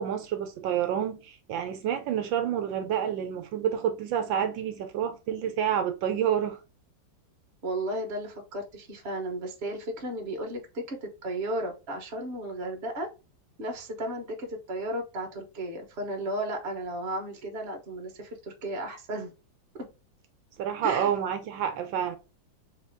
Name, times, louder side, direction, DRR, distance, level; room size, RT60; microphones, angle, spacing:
voice 1, 0.0-6.6 20.6-22.2, right 9 dB, 80° right, 1.3 m, -28 dB
voice 2, 7.6-13.1 13.6-19.3 19.8-19.9 20.8-21.1, right 1 dB, 40° right, 1.1 m, -34 dB
4.1 x 2.7 x 3.5 m
omnidirectional pair, 2.1 m